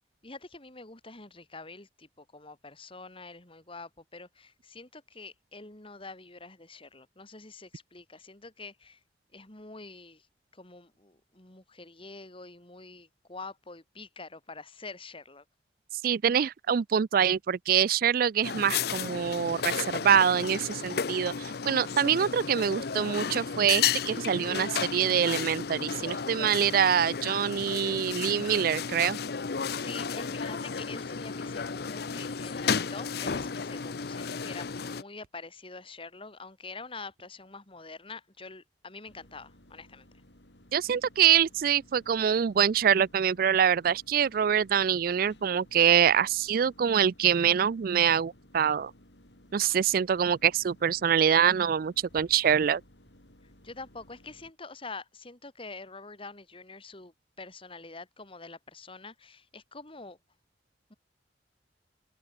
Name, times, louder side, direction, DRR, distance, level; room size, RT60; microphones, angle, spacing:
voice 1, 0.2-9.0 9.3-10.3 10.5-15.4 29.7-40.1 53.6-60.2 60.9-61.0, left 3 dB, 30° left, 3.0 m, -46 dB
voice 2, 16.0-29.2 40.7-48.9 49.5-52.8, right 8 dB, 55° right, 0.4 m, -25 dB
sound 1, 18.4-35.0, left 6 dB, 65° left, 0.7 m, -33 dB
sound 2, 39.0-54.5, left 1 dB, 85° left, 7.0 m, -57 dB
head